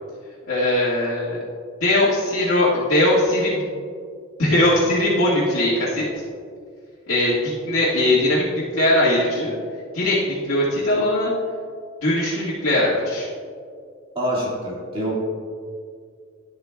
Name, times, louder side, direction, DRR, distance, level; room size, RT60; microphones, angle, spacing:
voice 1, 0.5-1.4 1.8-3.7 4.4-6.2 7.1-9.5 9.9-11.3 12.0-13.3, left 1 dB, 75° left, -10 dB, 1.7 m, -20 dB
voice 2, 14.2-15.2, right 1 dB, 25° right, -6 dB, 2.0 m, -25 dB
11.0 x 7.9 x 2.3 m, 2.2 s
head